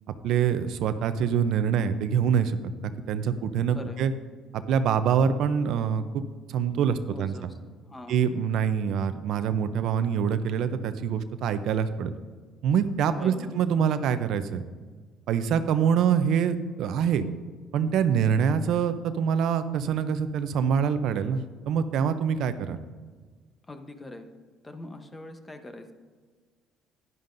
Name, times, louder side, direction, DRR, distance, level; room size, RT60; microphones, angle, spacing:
voice 1, 0.2-2.7 3.1-4.1 4.7-6.2 6.5-7.3 8.1-12.1 12.6-14.6 15.3-17.2 17.7-22.8, right 7 dB, 65° right, 11 dB, 0.6 m, -25 dB
voice 2, 3.7-4.1 7.1-7.6 7.8-8.2 13.1-13.6 23.7-24.3 24.6-25.9, left 2 dB, 15° left, 7 dB, 0.9 m, -42 dB
11.0 x 11.0 x 2.6 m, 1.5 s
cardioid pair, 115°, 0 cm